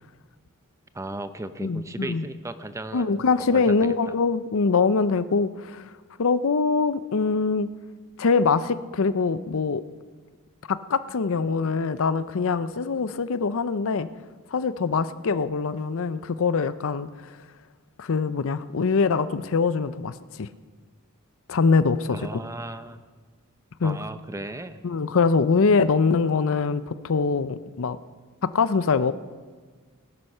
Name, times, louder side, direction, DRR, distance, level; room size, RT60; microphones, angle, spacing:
voice 1, 0.9-3.9 22.1-23.0 23.8-24.8, right 2 dB, 15° right, 11 dB, 0.6 m, -36 dB
voice 2, 1.6-2.2 2.9-5.9 6.2-7.7 8.2-9.8 10.7-14.1 14.5-17.1 18.0-20.5 21.5-22.4 23.8-24.0 24.8-28.0 28.4-29.1, left 4 dB, 65° left, 14 dB, 0.6 m, -23 dB
18.5 x 9.9 x 6.6 m, 1.5 s
head